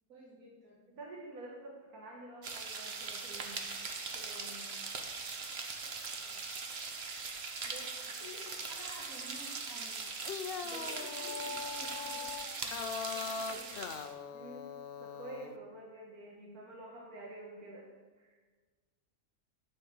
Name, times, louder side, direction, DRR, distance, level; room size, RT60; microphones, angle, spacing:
voice 1, 0.1-0.8 6.1-6.4 7.8-10.1 10.8-14.0, equal, 65° right, -11 dB, 3.4 m, -53 dB
voice 2, 0.9-3.6 4.1-4.7 7.6-7.9 10.6-11.1 14.3-14.7 15.0-17.9 18.2-18.3, right 2 dB, 90° right, -3 dB, 1.9 m, -49 dB
sound 1, 2.4-14.1, right 4 dB, 50° right, 1.1 m, -41 dB
sound 2, 10.1-15.6, left 6 dB, 60° left, 0.6 m, -41 dB
10.0 x 5.6 x 6.3 m, 1.4 s
omnidirectional pair, 1.5 m